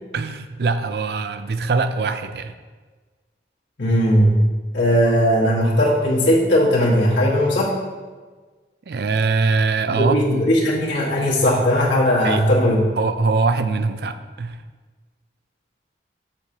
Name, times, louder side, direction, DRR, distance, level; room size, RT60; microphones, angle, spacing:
voice 1, 0.1-2.5 8.9-10.2 12.2-12.4 13.0-14.6, right 4 dB, 65° right, 10 dB, 0.4 m, -22 dB
voice 2, 3.8-4.4 4.7-7.8 9.9-12.8, equal, 90° left, -5 dB, 1.7 m, -18 dB
7.3 x 6.3 x 2.9 m, 1.4 s
head